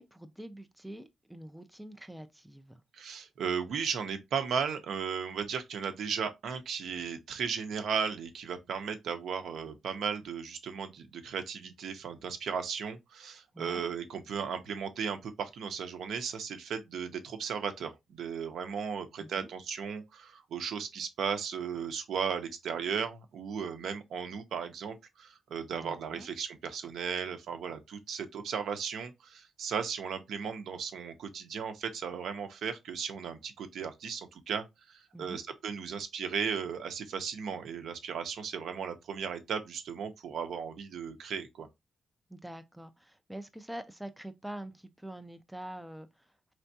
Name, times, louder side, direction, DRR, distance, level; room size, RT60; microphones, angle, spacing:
voice 1, 0.0-2.8 13.5-13.9 19.2-19.5 25.7-26.3 35.1-35.4 42.3-46.5, right 1 dB, 5° right, 0.3 m, -45 dB
voice 2, 2.9-41.7, right 6 dB, 70° right, 0.7 m, -36 dB
4.4 x 3.3 x 2.7 m
wide cardioid pair, 180°, 0 cm